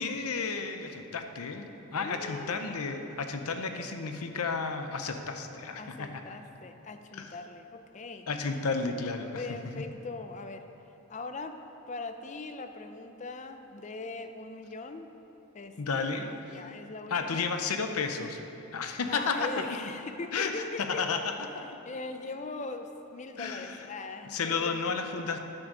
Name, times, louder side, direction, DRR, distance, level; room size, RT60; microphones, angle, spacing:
voice 1, 0.0-6.1 7.1-7.4 8.3-9.4 15.8-16.6 17.1-18.4 18.7-19.5 20.3-21.3 23.4-23.9 24.3-25.4, left 4 dB, 80° left, 6 dB, 0.7 m, -32 dB
voice 2, 2.0-2.6 5.8-8.3 9.3-10.7 11.1-11.6 11.9-15.1 15.5-17.5 19.1-21.1 21.8-24.9, left 3 dB, 30° left, 8 dB, 0.4 m, -40 dB
9.9 x 6.4 x 6.1 m, 3.0 s
head